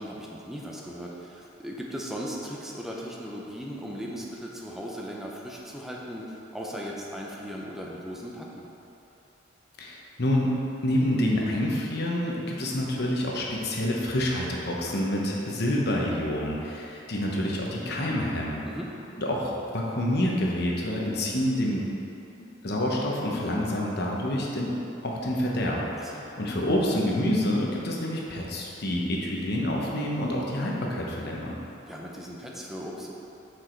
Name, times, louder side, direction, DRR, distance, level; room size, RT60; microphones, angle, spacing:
voice 1, 0.0-8.7 18.6-18.9 25.9-26.3 31.9-33.1, equal, ahead, -3 dB, 0.6 m, -38 dB
voice 2, 9.8-18.6 19.2-21.9 22.4-24.8 25.0-31.6, left 1 dB, 55° left, -2 dB, 1.0 m, -27 dB
6.3 x 4.9 x 4.5 m, 3.0 s
head